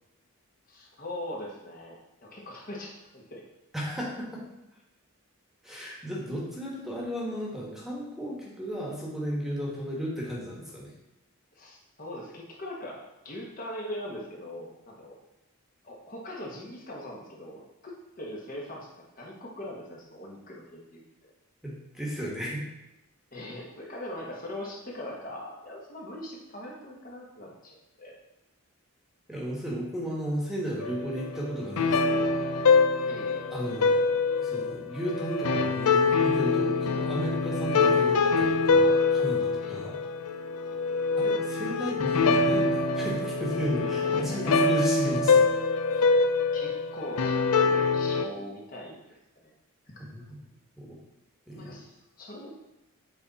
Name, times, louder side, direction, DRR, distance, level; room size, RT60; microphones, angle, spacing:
voice 1, 0.7-3.4 11.5-13.0 13.2-15.1 15.8-18.9 19.2-21.0 23.3-28.2 33.1-33.5 39.6-40.0 40.7-40.8 44.2-44.4 46.5-49.0 49.4-49.5 50.0-50.1 51.5-52.6, left 1 dB, 40° left, -3 dB, 1.2 m, -41 dB
voice 2, 3.7-4.4 5.6-10.9 21.6-22.6 29.3-32.8 33.5-34.1 34.4-40.0 41.2-45.5 50.0-50.4 50.8-51.0 51.5-51.8, equal, ahead, -4 dB, 1.3 m, -34 dB
sound 1, 30.8-48.2, left 4 dB, 85° left, 0.5 m, -25 dB
7.9 x 4.3 x 4.1 m, 0.92 s
head